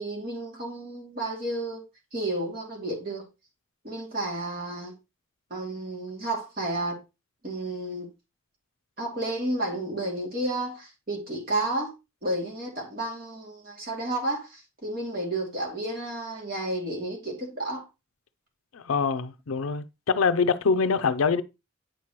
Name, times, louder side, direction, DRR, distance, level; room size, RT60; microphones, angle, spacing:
voice 1, 0.0-1.8 2.1-3.3 3.8-4.9 5.5-7.0 7.4-8.1 9.0-11.9 12.2-17.8, right 1 dB, 45° right, 2.6 m, -31 dB
voice 2, 18.7-21.4, left 5 dB, 85° left, 0.5 m, -24 dB
8.2 x 6.0 x 3.0 m
head